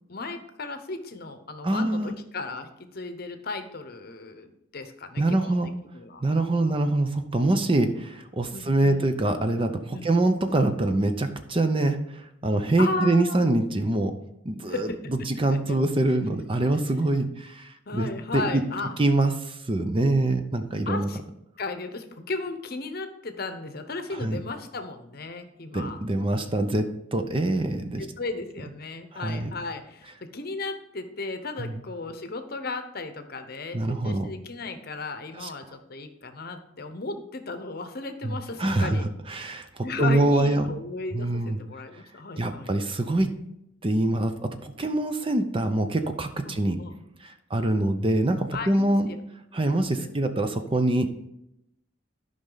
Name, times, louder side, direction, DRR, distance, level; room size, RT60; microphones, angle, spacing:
voice 1, 0.1-2.7 2.9-5.6 5.9-6.2 6.6-6.8 8.5-9.1 9.9-10.1 12.8-13.6 14.7-15.3 15.7-15.8 17.9-19.0 20.9-21.2 21.6-26.0 28.0-39.1 39.5-42.7 46.4-46.9 48.5-49.2 49.7-50.1, left 3 dB, 50° left, 8 dB, 0.8 m, -35 dB
voice 2, 1.6-2.1 5.2-5.7 6.2-14.1 14.4-18.6 19.0-21.1 24.1-24.4 25.7-28.1 29.1-29.5 31.6-31.8 33.7-34.3 35.4-35.5 38.2-40.7 41.1-41.6 42.4-43.3 43.8-46.8 47.2-49.1 49.5-51.1, right 2 dB, 25° right, 7 dB, 0.6 m, -25 dB
12.0 x 5.4 x 3.9 m, 0.82 s
head